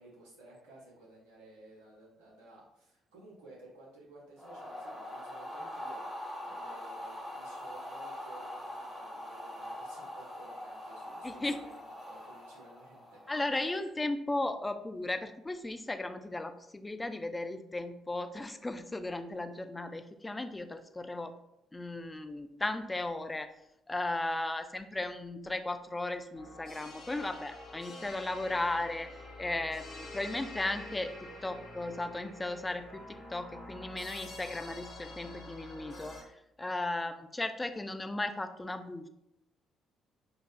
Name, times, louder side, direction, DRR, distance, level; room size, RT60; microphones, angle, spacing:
voice 1, 0.0-6.0 6.4-11.8 12.1-13.4, right 2 dB, 70° right, -5 dB, 1.2 m, -55 dB
sound 1, 4.4-13.5, left 1 dB, 10° right, 1.4 m, -43 dB
voice 2, 11.2-11.6 13.3-21.3 21.7-23.5 23.9-29.1 29.4-31.1 31.4-39.1, left 2 dB, 20° left, 9 dB, 0.4 m, -36 dB
sound 2, 26.3-36.2, left 2 dB, 55° left, 1.4 m, -47 dB
4.8 x 2.4 x 2.4 m, 0.82 s
figure-of-eight pair, 45°, 0 cm